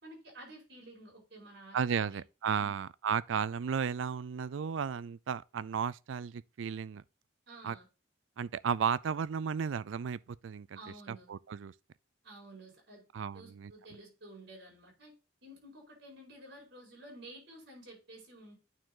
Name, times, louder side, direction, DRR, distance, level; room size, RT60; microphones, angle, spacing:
voice 1, 0.0-2.2 7.5-7.8 10.7-11.3 12.2-13.0 13.3-15.1 15.4-18.6, right 1 dB, 65° right, 4.9 m, -52 dB
voice 2, 1.7-7.0 7.6-7.8 8.4-10.8 11.1-11.7 13.1-13.7, right 7 dB, 85° right, 0.4 m, -34 dB
9.0 x 4.7 x 3.8 m
head